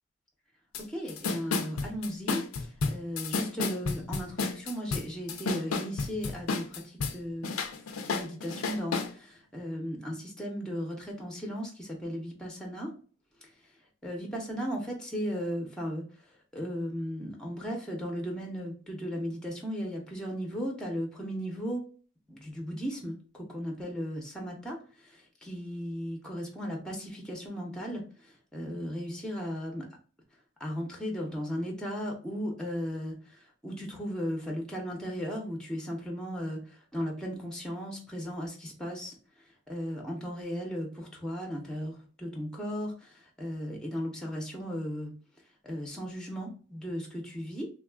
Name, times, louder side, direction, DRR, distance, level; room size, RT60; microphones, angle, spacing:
sound 1, 0.7-0.8 1.1-7.2 7.4-9.1, left 4 dB, 85° left, 0.5 m, -31 dB
voice 1, 0.8-7.5 8.1-12.9 13.4-13.5 14.0-16.1 16.5-21.8 22.3-29.9 30.6-39.2 39.7-45.1 45.6-47.7, equal, 5° left, 0 dB, 0.7 m, -36 dB
3.2 x 2.3 x 2.2 m, 0.40 s
head